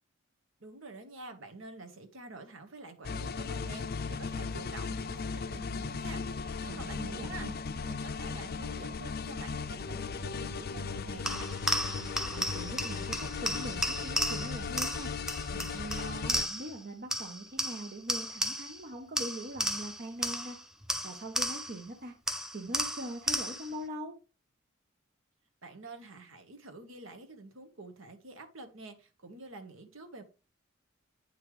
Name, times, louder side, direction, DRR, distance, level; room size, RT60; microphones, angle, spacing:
voice 1, 0.6-7.5 7.7-11.5 25.6-30.2, right 2 dB, 70° right, 1.4 m, -48 dB
sound 1, 3.0-16.4, left 5 dB, 50° left, 0.5 m, -37 dB
voice 2, 6.7-7.5 12.3-15.1 15.5-20.6 21.0-22.1 22.5-24.2, right 1 dB, 50° right, 0.9 m, -42 dB
sound 2, 11.2-16.8 17.1-18.8 19.2-21.8 22.3-23.8, equal, 5° right, 0.6 m, -34 dB
9.0 x 5.7 x 3.2 m
head